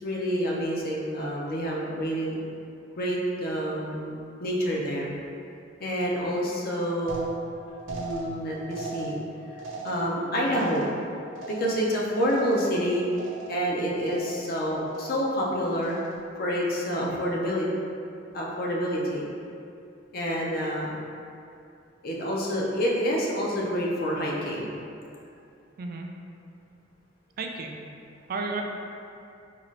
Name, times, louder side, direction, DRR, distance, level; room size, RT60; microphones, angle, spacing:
voice 1, 0.0-2.4 3.0-5.1 5.8-7.3 7.9-9.2 9.8-11.0 11.5-13.0 13.5-16.0 16.4-17.7 18.3-19.3 20.1-21.0 22.0-24.7, equal, 50° left, -3 dB, 0.6 m, -28 dB
sound 1, 7.1-12.9 13.1-13.7 14.0-14.6 14.9-15.4 15.8-16.3, right 2 dB, 90° right, 0.7 m, -40 dB
voice 2, 25.8-26.1 27.4-27.8 28.3-28.6, right 4 dB, 50° right, 2 dB, 0.3 m, -33 dB
3.8 x 2.4 x 3.1 m, 2.5 s
head